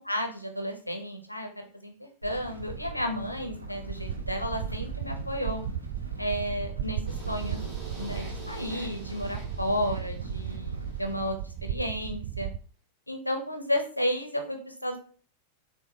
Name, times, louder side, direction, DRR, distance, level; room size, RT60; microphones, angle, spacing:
voice 1, 0.0-1.9 2.2-5.6 6.2-7.7 8.0-11.4 11.6-12.5 13.1-15.0, equal, 85° left, 5 dB, 0.7 m, -32 dB
sound 1, 2.2-11.3, equal, 85° right, 0.9 m, -42 dB
sound 2, 3.9-12.6, right 10 dB, 50° right, 0.3 m, -36 dB
sound 3, 7.1-11.1, right 3 dB, 20° right, 2.0 m, -46 dB
6.5 x 2.6 x 2.7 m, 0.42 s
figure-of-eight pair, 90°, 0 cm